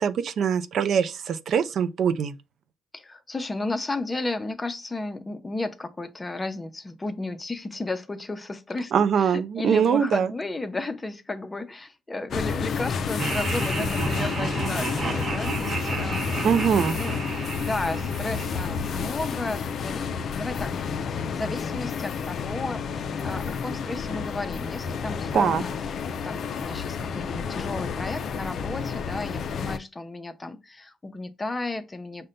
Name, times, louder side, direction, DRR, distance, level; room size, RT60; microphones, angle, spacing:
voice 1, 0.0-2.4 8.9-10.3 16.4-17.0 25.3-25.6, right 7 dB, 65° right, 0.4 m, -23 dB
voice 2, 2.9-8.9 9.3-16.3 16.9-17.2 17.6-20.9 21.1-22.9 23.2-25.7 26.1-32.3, left 2 dB, 20° left, 0.6 m, -33 dB
sound 1, 12.3-29.8, left 6 dB, 60° left, 0.4 m, -30 dB
Laughter, 13.2-19.4, right 3 dB, 40° right, 1.1 m, -32 dB
5.3 x 2.2 x 3.8 m
cardioid pair, 90°, 0 cm